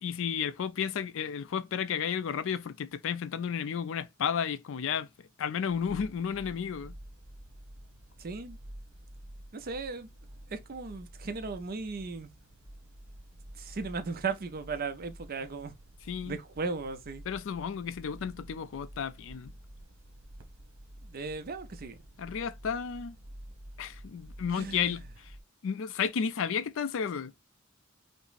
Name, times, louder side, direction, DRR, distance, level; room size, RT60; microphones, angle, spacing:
voice 1, 0.0-5.1 5.4-6.9 16.1-16.4 17.3-19.5 22.2-23.2 23.8-25.3 25.6-27.3, left 7 dB, 70° left, 0.4 m, -32 dB
sound 1, 5.7-25.4, right 1 dB, 75° right, 1.2 m, -50 dB
voice 2, 8.2-8.6 9.5-10.1 10.5-12.3 13.6-15.7 16.3-17.2 21.0-22.0 24.5-25.0, right 4 dB, 45° right, 0.5 m, -36 dB
5.1 x 2.0 x 2.4 m
head